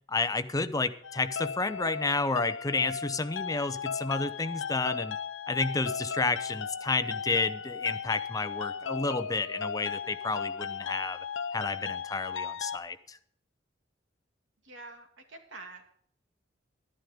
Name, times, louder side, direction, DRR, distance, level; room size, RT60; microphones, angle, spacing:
voice 1, 0.1-5.2 5.5-11.2 11.5-13.2, left 3 dB, 20° left, 11 dB, 0.7 m, -31 dB
sound 1, 1.0-12.8, left 6 dB, 85° left, 0.7 m, -36 dB
voice 2, 14.6-15.8, right 3 dB, 75° right, 4 dB, 2.5 m, -46 dB
11.5 x 11.0 x 5.1 m, 0.62 s
head